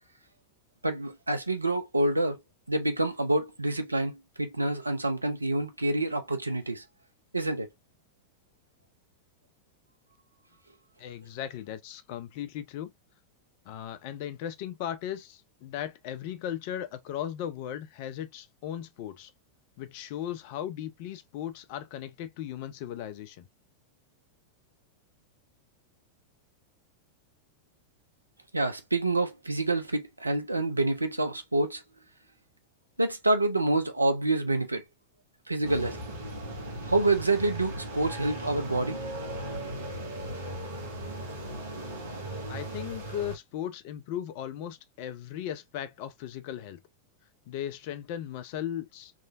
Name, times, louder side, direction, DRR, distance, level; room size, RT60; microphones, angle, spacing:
voice 1, 0.8-2.4 2.7-6.8 7.3-7.7 28.5-31.8 33.0-34.8 35.5-36.0 36.9-39.0, right 2 dB, 85° right, 0.6 m, -27 dB
voice 2, 11.0-12.9 13.7-19.3 19.8-23.5 42.5-46.8 47.5-49.1, left 10 dB, 45° left, 0.6 m, -37 dB
sound 1, 35.6-43.4, right 1 dB, 65° right, 1.6 m, -37 dB
3.7 x 3.3 x 2.5 m
figure-of-eight pair, 90°, 0 cm